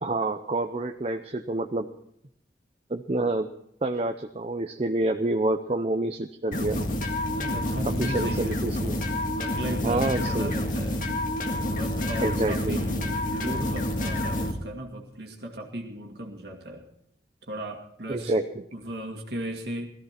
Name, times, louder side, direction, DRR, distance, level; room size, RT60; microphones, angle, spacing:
voice 1, 0.0-1.9 2.9-3.5 3.8-6.9 7.8-8.9 9.8-10.5 12.2-12.8 18.1-18.6, right 2 dB, 35° right, 6 dB, 0.6 m, -28 dB
sound 1, 6.5-14.5, left 1 dB, 50° left, 1.9 m, -28 dB
voice 2, 7.3-8.6 9.3-11.0 11.6-16.9 17.5-18.3 18.7-19.9, right 1 dB, 65° right, 2 dB, 1.9 m, -36 dB
17.5 x 13.5 x 4.3 m, 0.72 s
head